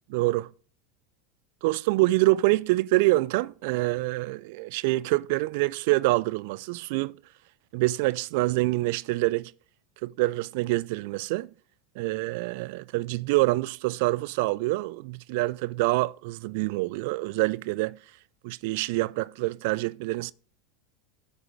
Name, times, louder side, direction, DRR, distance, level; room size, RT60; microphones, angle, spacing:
voice 1, 0.1-0.5 1.6-7.2 7.7-9.5 10.0-11.5 12.0-18.0 18.4-20.3, right 20 dB, 60° right, 0.3 m, -26 dB
9.6 x 5.2 x 6.1 m
hypercardioid pair, 85°, 0 cm